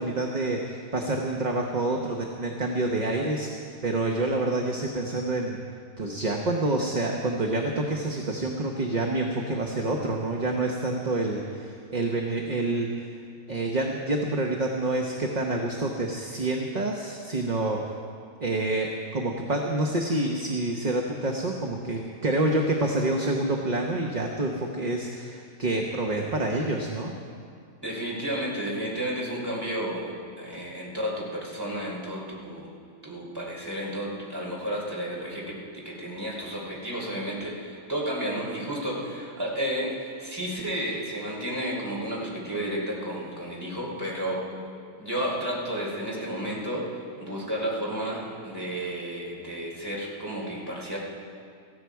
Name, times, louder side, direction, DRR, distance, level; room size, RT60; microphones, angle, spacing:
voice 1, 0.0-5.6 6.0-12.9 13.5-17.9 18.4-27.1, right 2 dB, 35° right, 1 dB, 1.0 m, -27 dB
voice 2, 27.8-32.7 33.0-44.4 45.0-46.9 47.2-51.0, equal, 15° right, -4 dB, 3.4 m, -32 dB
17.5 x 15.0 x 4.7 m, 2.2 s
omnidirectional pair, 1.5 m